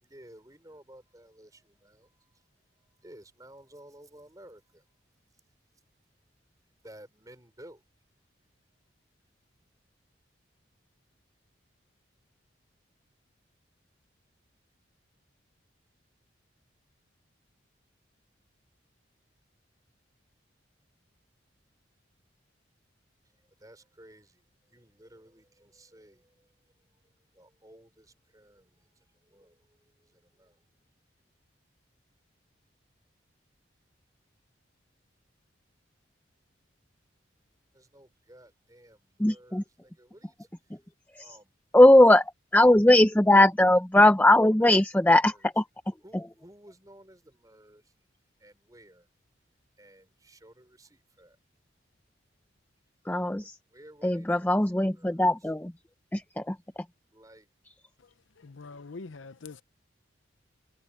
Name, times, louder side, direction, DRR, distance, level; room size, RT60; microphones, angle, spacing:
voice 1, 0.0-2.4 2.8-4.8 6.8-7.8 23.6-24.4 24.7-26.5 27.3-30.6 37.7-40.8 41.2-41.6 44.4-44.5 45.2-45.3 46.0-47.9 48.4-49.1 49.8-51.4 53.4-55.3 57.1-57.5, right 1 dB, 20° right, 5.4 m, -54 dB
voice 2, 39.2-39.6 41.1-41.4 41.7-46.3 53.0-53.6 54.0-55.7 56.1-56.9, left 1 dB, 10° left, 0.5 m, -20 dB
voice 3, 58.4-59.6, left 3 dB, 90° left, 0.7 m, -44 dB
head